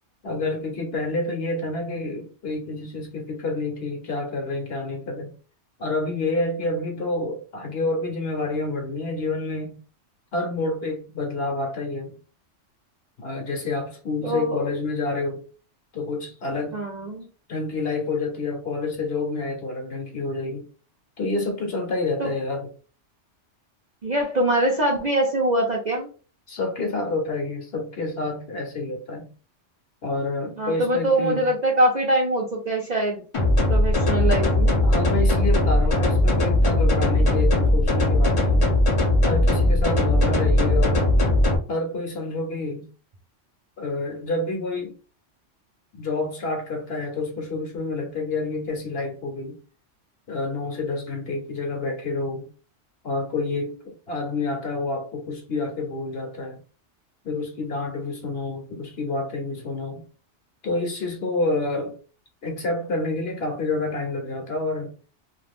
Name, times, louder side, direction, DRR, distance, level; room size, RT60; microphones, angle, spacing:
voice 1, 0.2-5.3 5.8-9.8 10.3-12.2 13.2-15.4 15.9-16.8 17.5-20.7 21.2-22.7 26.5-29.3 30.0-31.5 34.8-38.7 39.2-41.1 41.7-42.9 43.8-45.0 46.0-49.6 50.3-52.5 53.0-56.6 57.2-60.0 60.6-62.0 62.4-64.9, left 2 dB, 60° left, 0.9 m, -28 dB
voice 2, 14.2-14.7 16.7-17.3 22.2-22.3 24.0-26.1 30.6-33.2 33.7-34.7, right 1 dB, 45° right, 0.6 m, -23 dB
sound 1, 33.3-41.6, left 1 dB, 35° left, 0.6 m, -19 dB
2.4 x 2.4 x 3.4 m
omnidirectional pair, 1.3 m